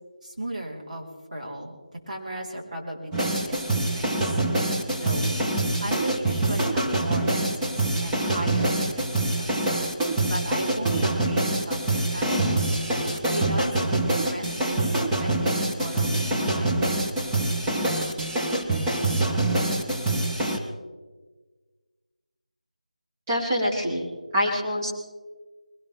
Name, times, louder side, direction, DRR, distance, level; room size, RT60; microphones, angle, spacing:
voice 1, 0.2-1.8 2.1-4.4 4.9-9.0 9.3-9.5 10.0-12.7 13.3-14.9 15.2-16.9, right 1 dB, 75° right, -1 dB, 4.4 m, -35 dB
sound 1, 3.1-20.6, right 2 dB, 10° right, 1.0 m, -25 dB
voice 2, 23.3-24.1 24.3-24.9, equal, 25° right, -4 dB, 3.5 m, -25 dB
21.5 x 18.0 x 3.7 m, 1.4 s
figure-of-eight pair, 165°, 4 cm